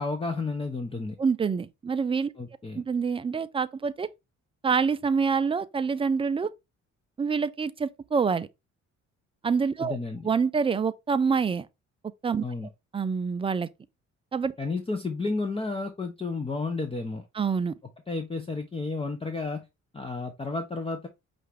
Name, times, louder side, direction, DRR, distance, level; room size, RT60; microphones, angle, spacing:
voice 1, 0.0-1.1 2.4-2.8 9.8-10.3 12.4-12.7 14.6-17.2 18.1-19.6 19.9-21.1, left 3 dB, 20° left, 0.7 m, -32 dB
voice 2, 1.2-2.3 2.7-4.1 4.6-6.5 7.2-8.5 9.4-10.0 10.2-11.7 12.2-12.4 12.9-13.7 14.3-14.5 17.4-17.7, right 5 dB, 20° right, 0.4 m, -26 dB
5.5 x 2.5 x 3.3 m
cardioid pair, 90°, 30 cm